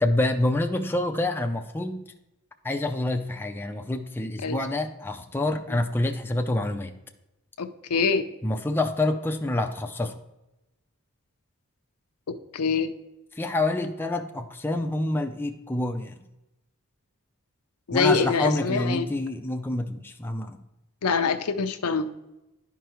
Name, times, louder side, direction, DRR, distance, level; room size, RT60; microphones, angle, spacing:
voice 1, 0.0-2.0 2.6-6.9 8.4-10.1 13.3-16.2 17.9-20.6, left 2 dB, 10° left, 5 dB, 0.4 m, -27 dB
voice 2, 7.6-8.2 12.5-12.9 17.9-19.1 21.0-22.1, left 5 dB, 85° left, 8 dB, 0.6 m, -24 dB
11.0 x 4.7 x 3.0 m, 0.94 s
head